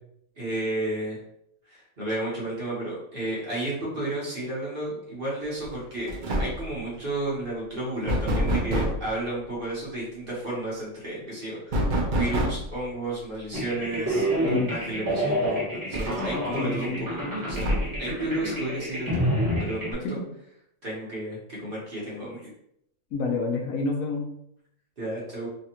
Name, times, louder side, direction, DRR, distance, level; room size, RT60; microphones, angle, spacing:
voice 1, 0.4-1.2 1.7-6.1 6.4-17.7 18.0-19.3 19.6-20.2 20.8-22.5 25.0-25.5, right 1 dB, 40° right, -6 dB, 1.2 m, -32 dB
sound 1, 5.6-5.8 6.1-6.7 8.1-9.1 11.7-12.8 14.3-14.4 14.8-14.9 15.9-16.6 17.5-18.1, equal, 60° right, 0.5 m, -26 dB
sound 2, 13.5-19.9, equal, 15° right, 1.1 m, -28 dB
voice 2, 14.4-14.7 16.5-17.1 20.0-20.2 23.1-24.3, left 3 dB, 80° left, 1 dB, 1.0 m, -28 dB
3.2 x 2.4 x 2.9 m, 0.74 s
omnidirectional pair, 1.5 m